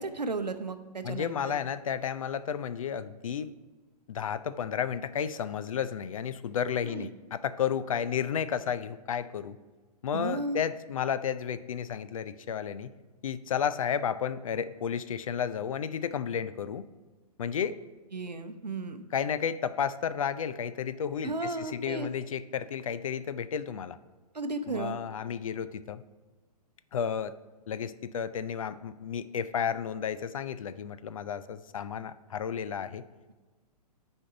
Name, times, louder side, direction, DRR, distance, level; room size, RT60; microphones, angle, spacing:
voice 1, 0.0-1.5 6.8-7.1 10.1-10.6 18.1-19.0 21.2-22.1 24.3-25.0, right 3 dB, 80° right, 9 dB, 0.7 m, -34 dB
voice 2, 1.0-3.5 4.1-9.6 10.0-12.9 13.2-16.8 17.4-17.8 19.1-24.0 24.7-26.0 26.9-27.3 27.7-33.0, left 8 dB, 55° left, 14 dB, 0.4 m, -32 dB
9.8 x 4.4 x 5.0 m, 1.3 s
figure-of-eight pair, 115°, 21 cm